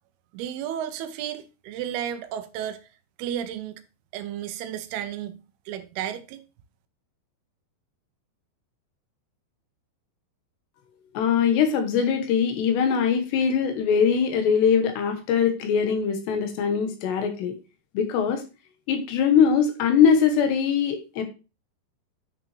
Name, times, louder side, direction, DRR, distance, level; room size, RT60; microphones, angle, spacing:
voice 1, 0.3-2.8 3.2-3.8 4.1-5.4 5.7-6.4, right 10 dB, 80° right, 2.6 m, -33 dB
voice 2, 11.1-17.6 17.9-18.4 18.9-21.2, left 7 dB, 85° left, 3.4 m, -22 dB
9.3 x 5.7 x 3.2 m
omnidirectional pair, 4.8 m